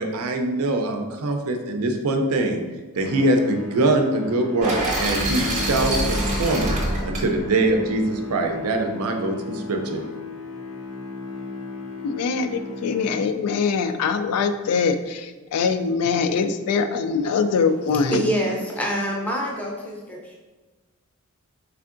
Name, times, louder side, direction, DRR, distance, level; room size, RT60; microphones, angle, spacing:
voice 1, 0.0-2.6 3.0-6.7 7.0-10.0, right 2 dB, 75° right, 4 dB, 0.5 m, -23 dB
sound 1, 2.9-13.7, left 2 dB, 70° left, 0.7 m, -35 dB
sound 2, 4.6-8.7, right 1 dB, 35° right, 0.7 m, -26 dB
voice 2, 12.0-18.2, left 5 dB, 85° left, 9 dB, 0.3 m, -23 dB
voice 3, 18.0-20.0, equal, 5° left, -2 dB, 0.5 m, -25 dB
3.6 x 3.4 x 2.4 m, 1.2 s
head